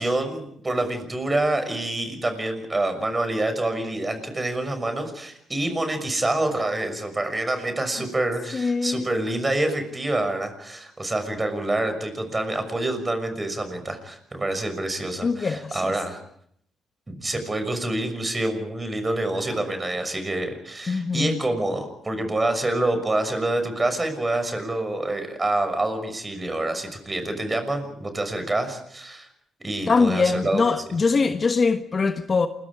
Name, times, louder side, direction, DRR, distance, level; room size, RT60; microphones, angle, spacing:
voice 1, 0.0-16.2 17.1-29.3 29.6-30.6, right 2 dB, 20° right, 6.2 m, -27 dB
voice 2, 8.5-9.1 15.2-15.9 20.9-21.4 29.9-32.5, left 4 dB, 35° left, 1.3 m, -22 dB
28.5 x 22.5 x 5.0 m
cardioid pair, 90°, 0 cm